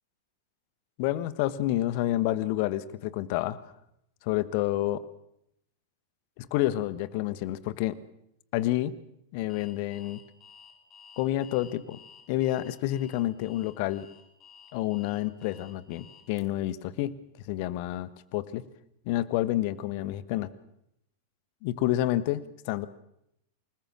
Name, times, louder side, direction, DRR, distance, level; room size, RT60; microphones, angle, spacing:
voice 1, 1.0-3.6 4.2-5.0 6.4-8.0 8.5-8.9 9.3-10.2 11.2-12.0 12.3-14.1 14.7-17.1 17.5-18.6 19.0-20.5 21.6-22.9, left 14 dB, 45° left, 16 dB, 1.4 m, -29 dB
Alarm, 9.5-16.4, left 6 dB, 15° left, 5.4 m, -53 dB
28.0 x 20.0 x 7.4 m, 0.78 s
figure-of-eight pair, 95°, 0 cm